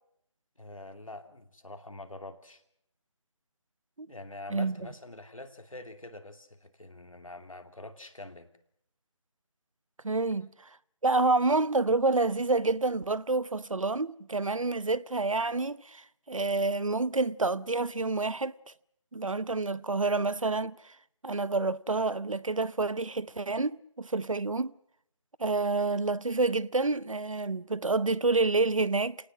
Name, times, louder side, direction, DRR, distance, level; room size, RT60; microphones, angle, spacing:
voice 1, 0.6-2.6 4.1-8.5 10.4-10.5, left 2 dB, 80° left, 2.8 m, -45 dB
voice 2, 10.0-10.5 11.0-18.5 19.1-20.9 21.2-24.7 25.4-29.2, right 3 dB, 75° right, 0.9 m, -28 dB
28.0 x 19.0 x 6.3 m
figure-of-eight pair, 160°, 17 cm